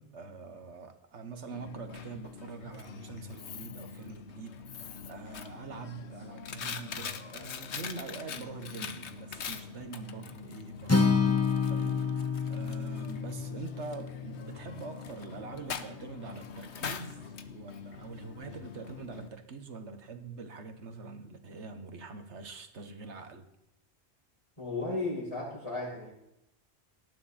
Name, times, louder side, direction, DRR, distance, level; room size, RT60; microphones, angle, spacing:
voice 1, 0.0-23.5, right 4 dB, 80° right, 1.7 m, -44 dB
Coin (dropping), 1.5-19.3, left 6 dB, 75° left, 1.2 m, -43 dB
Acoustic guitar, 10.9-15.1, left 5 dB, 15° left, 1.2 m, -29 dB
voice 2, 24.6-26.1, left 2 dB, 30° left, 6.4 m, -34 dB
18.5 x 12.5 x 4.3 m
omnidirectional pair, 1.2 m